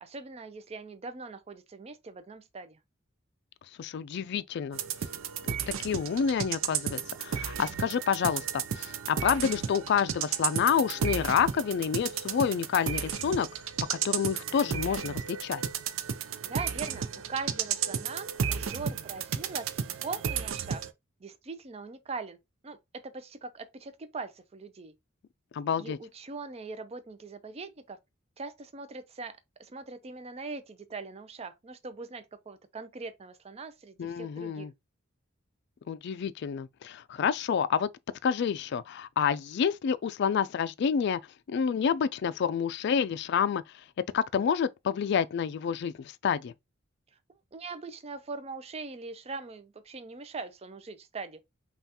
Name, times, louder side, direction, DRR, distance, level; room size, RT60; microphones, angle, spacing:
voice 1, 0.0-2.8 16.4-20.8 21.2-22.4 22.6-24.9 25.8-28.0 28.4-34.7 47.5-51.4, right 4 dB, 30° right, 0.4 m, -41 dB
voice 2, 3.8-4.8 5.7-13.5 13.9-15.6 25.5-26.0 34.0-34.7 35.9-37.9 38.2-41.2 41.5-43.6 44.1-46.5, left 7 dB, 55° left, 0.3 m, -28 dB
sound 1, 4.7-20.9, right 7 dB, 80° right, 0.5 m, -33 dB
5.5 x 2.3 x 2.8 m
head